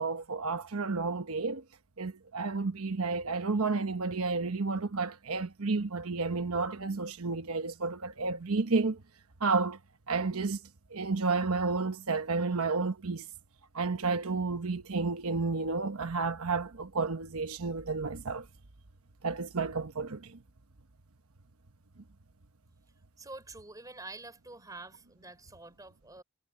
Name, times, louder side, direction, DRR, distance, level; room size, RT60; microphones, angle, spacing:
voice 1, 0.0-1.6 2.0-9.0 9.4-9.8 10.1-10.6 10.9-13.3 13.7-18.5 19.2-20.4, right 4 dB, 80° right, 1.1 m, -31 dB
voice 2, 23.2-26.2, right 2 dB, 15° right, 3.8 m, -47 dB
head